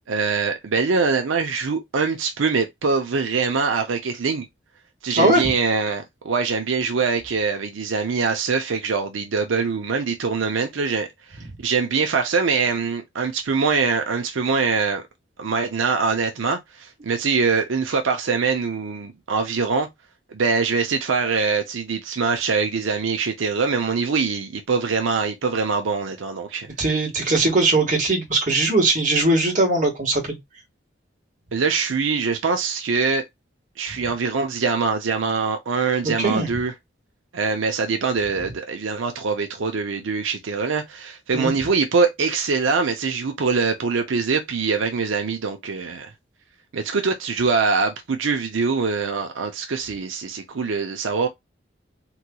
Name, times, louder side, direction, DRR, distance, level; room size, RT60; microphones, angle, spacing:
voice 1, 0.1-4.5 5.0-15.0 15.4-19.9 20.3-26.7 31.5-33.2 33.8-36.7 37.3-46.1 46.7-51.3, right 4 dB, 80° right, 0.6 m, -23 dB
voice 2, 5.1-5.5 26.8-30.4 36.0-36.5 41.3-41.6, right 2 dB, 40° right, 1.4 m, -20 dB
3.8 x 3.0 x 2.2 m
head